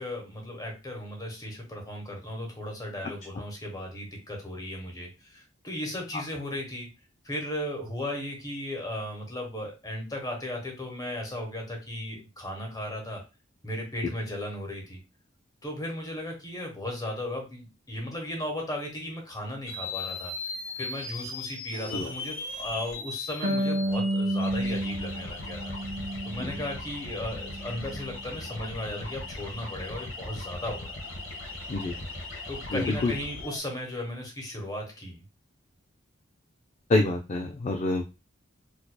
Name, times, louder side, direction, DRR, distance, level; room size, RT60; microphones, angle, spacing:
voice 1, 0.0-6.9 7.2-13.2 13.6-15.0 15.6-20.3 20.8-25.7 26.2-31.0 32.5-35.2, left 1 dB, 20° left, 1 dB, 1.1 m, -36 dB
sound 1, 19.6-33.6, left 2 dB, 80° left, 1.7 m, -38 dB
Harp, 23.4-26.8 27.2-28.2, right 1 dB, 40° right, 0.6 m, -31 dB
voice 2, 32.7-33.1 36.9-38.0, left 2 dB, 35° left, 4 dB, 0.4 m, -26 dB
4.5 x 2.7 x 2.2 m, 0.28 s
head